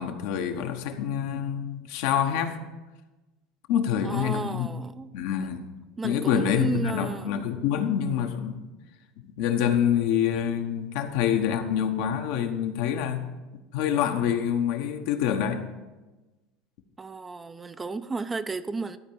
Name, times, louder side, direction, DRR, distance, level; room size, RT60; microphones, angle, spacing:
voice 1, 0.0-2.6 3.7-4.7 5.1-5.7 6.0-8.6 9.2-13.3 13.7-15.6, left 9 dB, 75° left, 1.0 m, -26 dB
voice 2, 4.0-5.1 6.0-7.4 17.0-19.0, right 4 dB, 20° right, 0.5 m, -33 dB
12.5 x 4.5 x 6.9 m
supercardioid pair, 100°, 0 cm